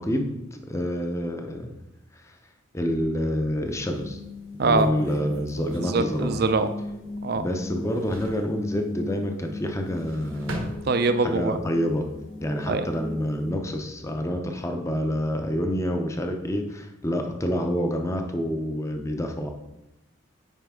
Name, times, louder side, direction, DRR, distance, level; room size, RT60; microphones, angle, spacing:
voice 1, 0.0-1.7 2.2-2.4 2.7-4.2 4.6-6.4 7.4-10.8 11.2-12.1 12.4-19.5, equal, 15° left, 4 dB, 0.6 m, -28 dB
sound 1, 2.8-3.8 4.3-4.4 4.8-7.4 7.7-8.5 9.7-11.4 11.9-12.5, right 2 dB, 85° right, 1.3 m, -39 dB
sound 2, 3.6-13.5, left 2 dB, 80° left, 2.6 m, -38 dB
voice 2, 5.8-6.7 7.2-7.4 10.9-11.6 12.7-12.9, right 3 dB, 50° right, 10 dB, 0.5 m, -23 dB
9.1 x 5.1 x 3.7 m, 0.94 s
head